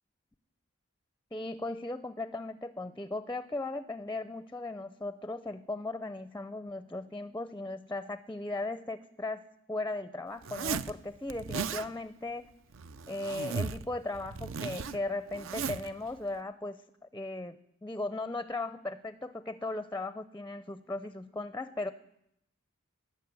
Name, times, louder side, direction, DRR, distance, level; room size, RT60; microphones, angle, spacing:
voice 1, 1.3-12.5 13.1-16.8 17.1-17.6 17.8-21.9, left 2 dB, 10° left, 13 dB, 0.4 m, -37 dB
Zipper (clothing), 10.4-10.9 11.3-11.9 12.7-13.9 14.1-15.9, right 5 dB, 70° right, 0.6 m, -36 dB
18.5 x 6.4 x 9.5 m, 0.79 s
head